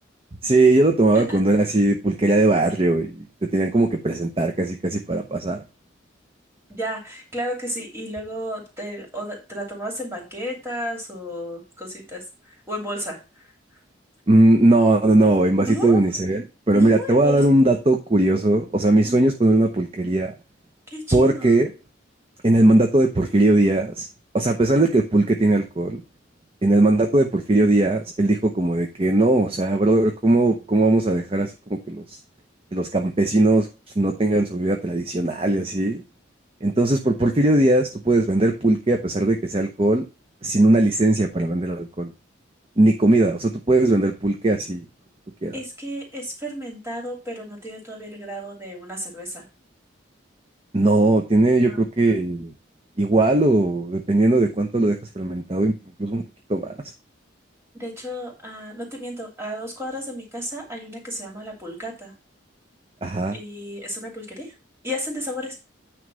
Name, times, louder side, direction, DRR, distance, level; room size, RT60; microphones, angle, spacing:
voice 1, 0.4-3.3 3.5-5.6 14.3-20.3 21.1-21.7 22.4-24.1 24.3-26.0 26.6-32.0 32.7-33.7 34.0-36.0 36.6-40.0 40.4-42.1 42.8-44.8 45.4-45.5 50.7-52.5 53.0-55.7 56.0-56.2 56.5-56.7 63.0-63.4, right 2 dB, 30° right, 3 dB, 0.7 m, -19 dB
voice 2, 6.7-13.2 15.6-16.0 16.7-17.4 19.0-19.3 20.9-21.6 45.5-49.4 51.7-51.9 57.7-62.1 63.3-64.5 64.8-65.6, equal, 15° right, 1 dB, 2.7 m, -33 dB
9.4 x 3.2 x 6.2 m, 0.29 s
head